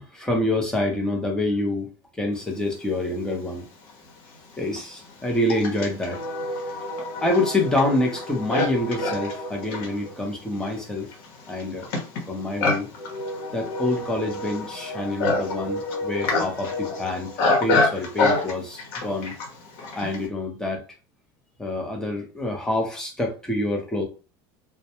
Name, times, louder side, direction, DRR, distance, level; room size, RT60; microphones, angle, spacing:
voice 1, 0.0-3.6 4.6-6.2 7.2-11.1 11.5-11.9 12.3-12.9 13.5-17.3 17.6-19.3 20.0-20.8 21.6-24.0, left 1 dB, 5° left, 1 dB, 0.6 m, -26 dB
Livestock farm animals working animals, 3.5-3.6 4.3-20.3, left 2 dB, 80° left, 0.9 m, -27 dB
2.1 x 2.1 x 2.9 m, 0.34 s
cardioid pair, 150°, 12 cm